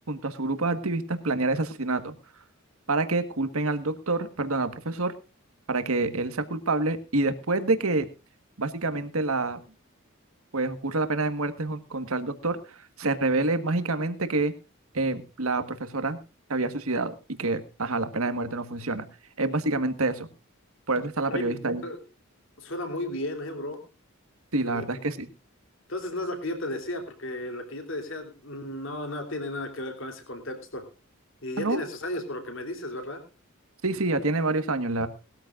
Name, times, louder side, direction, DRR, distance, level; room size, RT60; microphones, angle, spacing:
voice 1, 0.1-2.1 2.9-5.1 5.7-8.1 8.6-9.6 10.5-12.6 13.0-14.5 14.9-16.2 16.5-19.1 19.4-20.3 20.9-21.8 24.5-25.3 31.6-31.8 33.8-35.1, right 2 dB, 80° right, 10 dB, 1.5 m, -27 dB
voice 2, 22.6-23.8 24.6-24.9 25.9-30.8 31.4-33.2, left 1 dB, 60° left, 5 dB, 3.3 m, -34 dB
20.0 x 13.5 x 2.5 m, 0.30 s
head